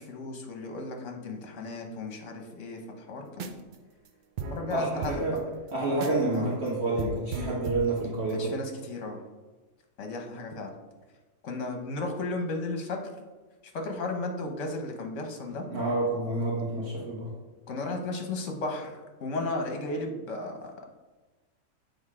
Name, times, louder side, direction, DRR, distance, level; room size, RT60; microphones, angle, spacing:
voice 1, 0.0-3.6 4.4-5.4 6.3-6.5 8.3-9.2 10.0-10.7 11.4-13.1 13.6-15.6 17.7-20.6, left 2 dB, 65° left, 3 dB, 1.3 m, -34 dB
sound 1, 3.3-3.7 4.1-4.2 4.4-6.4 6.7-6.8 7.0-8.4, right 5 dB, 70° right, 0.4 m, -37 dB
voice 2, 4.7-5.4 5.7-8.5 15.7-17.3, right 2 dB, 55° right, -6 dB, 1.8 m, -28 dB
7.9 x 3.7 x 4.9 m, 1.2 s
omnidirectional pair, 1.4 m